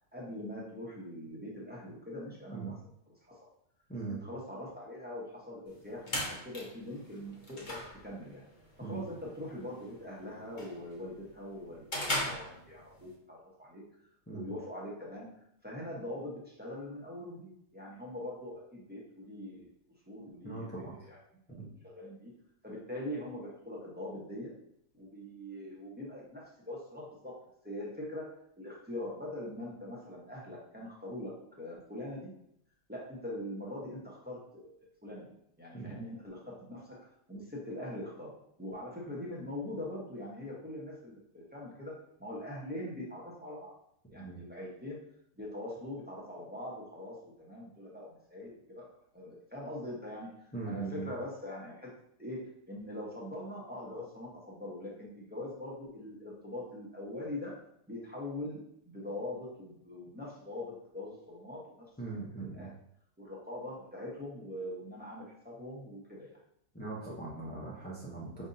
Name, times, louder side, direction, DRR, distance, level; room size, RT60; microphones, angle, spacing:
voice 1, 0.1-2.8 3.1-3.5 4.1-7.8 8.0-8.4 8.8-13.8 14.3-15.3 15.6-19.7 20.1-21.2 21.5-21.6 21.8-22.3 22.6-24.5 24.9-27.4 27.6-32.3 32.9-34.7 35.0-35.3 35.6-38.3 38.6-43.7 44.1-45.0 45.3-48.8 49.1-50.3 50.6-51.9 52.2-57.5 57.9-61.9 62.5-62.7 63.2-66.3, left 1 dB, 10° right, -5 dB, 0.8 m, -42 dB
sound 1, 5.7-13.1, left 1 dB, 35° left, 0.9 m, -40 dB
voice 2, 20.4-20.9 21.5-21.7 35.7-36.0 44.2-44.4 50.5-51.1 62.0-62.7 66.7-68.5, right 4 dB, 15° left, -7 dB, 0.3 m, -40 dB
5.2 x 3.5 x 2.7 m, 0.71 s
omnidirectional pair, 1.7 m